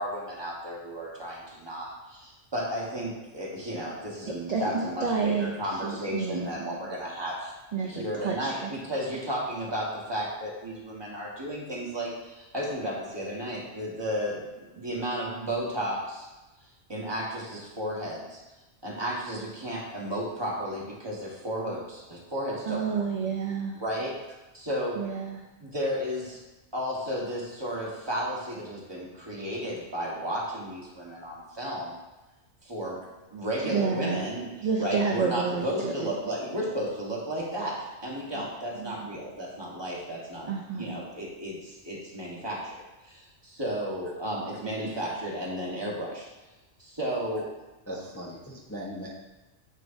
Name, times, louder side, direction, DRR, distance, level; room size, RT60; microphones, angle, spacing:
voice 1, 0.0-7.5 7.8-14.4 14.7-16.3 16.9-18.4 18.8-23.0 23.8-24.1 24.5-25.0 25.6-26.4 26.7-32.0 32.6-33.0 33.3-34.5 34.8-40.5 40.7-42.7 43.0-46.3 46.8-47.5, equal, 25° right, -5 dB, 1.4 m, -33 dB
voice 2, 4.3-6.5 7.7-8.7 22.7-23.8 24.9-25.4 33.6-34.3 34.6-36.1 38.4-38.5 38.8-39.1 40.5-41.0, right 5 dB, 50° right, 1 dB, 0.5 m, -30 dB
voice 3, 47.9-49.1, equal, 15° left, -4 dB, 0.7 m, -38 dB
6.7 x 6.2 x 2.7 m, 1.1 s
omnidirectional pair, 1.2 m